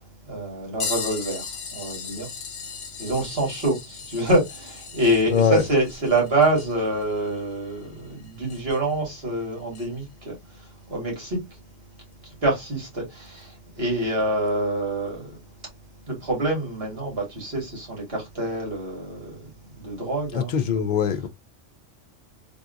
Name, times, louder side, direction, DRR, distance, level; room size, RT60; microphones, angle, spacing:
voice 1, 0.3-2.3 2.6-2.7 3.0-11.4 12.2-15.4 16.1-20.8, right 1 dB, 55° right, 1.9 m, -26 dB
sound 1, 0.8-9.0 9.7-9.9 12.1-12.2 13.3-13.4 14.5-14.6, left 6 dB, 75° left, 1.1 m, -37 dB
voice 2, 5.3-5.6 20.3-21.3, left 7 dB, 60° left, 0.5 m, -22 dB
3.4 x 2.7 x 2.5 m
omnidirectional pair, 1.3 m